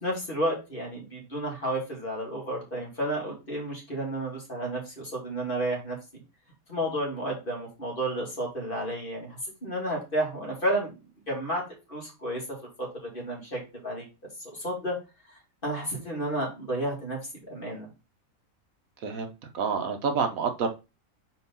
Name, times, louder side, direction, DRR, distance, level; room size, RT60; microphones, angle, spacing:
voice 1, 0.0-6.0 6.7-10.9 11.3-11.6 11.9-12.4 12.8-14.0 14.4-15.0 15.3-17.2 17.5-17.9, right 1 dB, 35° left, -2 dB, 2.6 m, -31 dB
voice 2, 19.0-20.7, right 5 dB, 70° right, 6 dB, 1.2 m, -28 dB
4.5 x 4.4 x 5.4 m, 0.28 s
omnidirectional pair, 1.6 m